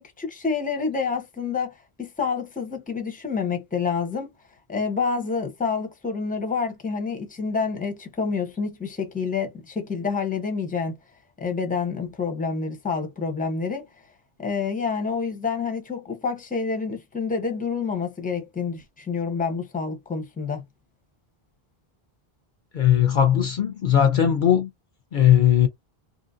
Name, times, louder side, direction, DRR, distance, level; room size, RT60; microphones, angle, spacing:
voice 1, 0.0-4.3 4.7-11.0 11.4-13.9 14.4-20.6, left 5 dB, 10° left, 0.7 m, -28 dB
voice 2, 22.7-24.7 25.1-25.7, left 10 dB, 60° left, 0.7 m, -18 dB
2.8 x 2.7 x 2.5 m
omnidirectional pair, 1.0 m